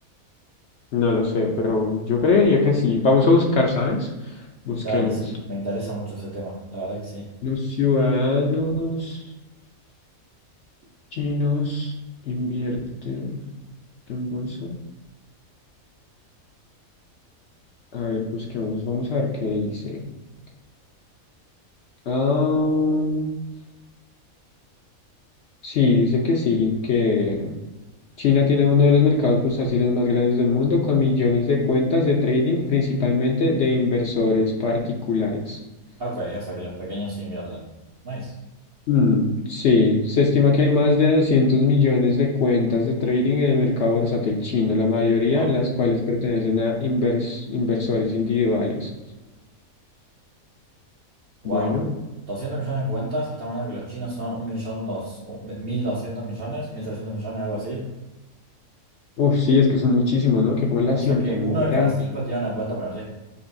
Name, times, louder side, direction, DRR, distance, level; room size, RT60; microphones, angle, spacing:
voice 1, 0.9-4.1 4.7-5.1 7.4-9.2 11.1-11.9 12.3-12.8 13.0-13.4 14.1-14.7 17.9-20.0 22.1-23.3 25.6-27.5 28.2-35.6 38.9-48.9 51.4-51.9 59.2-61.9, left 3 dB, 60° left, -1 dB, 0.8 m, -21 dB
voice 2, 4.8-7.3 36.0-37.6 38.0-38.3 45.3-45.5 51.4-51.7 52.3-57.8 60.9-63.0, right 1 dB, 50° right, -7 dB, 0.9 m, -29 dB
6.6 x 2.5 x 2.6 m, 1.1 s
omnidirectional pair, 1.5 m